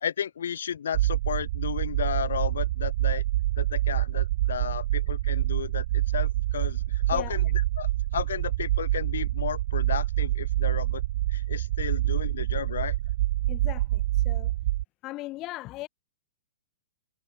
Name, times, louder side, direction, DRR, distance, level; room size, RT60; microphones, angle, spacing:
voice 1, 0.0-3.2 3.6-7.4 7.8-11.0 11.3-13.0, left 8 dB, 70° left, 2.1 m, -33 dB
sound 1, 0.9-14.8, right 15 dB, 55° right, 0.5 m, -26 dB
voice 2, 13.5-14.5 15.0-15.9, left 18 dB, 35° left, 2.7 m, -38 dB
hypercardioid pair, 115°, 0 cm